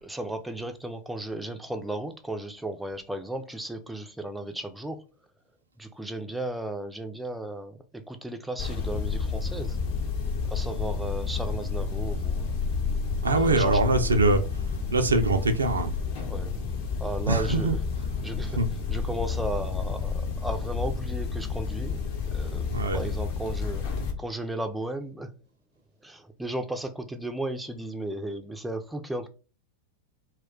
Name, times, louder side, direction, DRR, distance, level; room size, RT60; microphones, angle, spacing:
voice 1, 0.0-5.0 5.8-9.8 10.5-12.6 13.3-13.8 16.3-16.5 17.0-17.8 18.2-18.6 18.9-22.0 22.3-23.8 24.2-25.3 26.0-29.3, right 1 dB, 5° right, 0.4 m, -35 dB
sound 1, 8.6-24.1, left 5 dB, 50° left, 0.7 m, -30 dB
voice 2, 13.2-14.4 14.9-15.9 17.3-17.7 18.5-18.7 22.7-23.0, right 2 dB, 75° right, 0.4 m, -23 dB
2.3 x 2.2 x 3.6 m
figure-of-eight pair, 90°, 0 cm